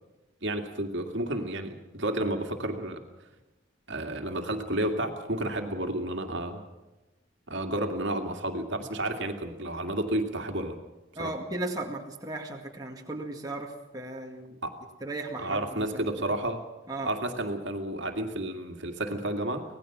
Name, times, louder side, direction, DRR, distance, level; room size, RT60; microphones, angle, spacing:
voice 1, 0.4-3.0 3.9-6.6 7.5-10.8 11.2-11.3 14.6-14.8 15.4-16.6 17.0-19.6, right 1 dB, 65° right, 4 dB, 2.3 m, -31 dB
voice 2, 11.2-14.6 15.0-16.1 16.9-17.1, right 2 dB, 20° right, 0 dB, 2.0 m, -36 dB
25.0 x 18.5 x 6.1 m, 1.0 s
head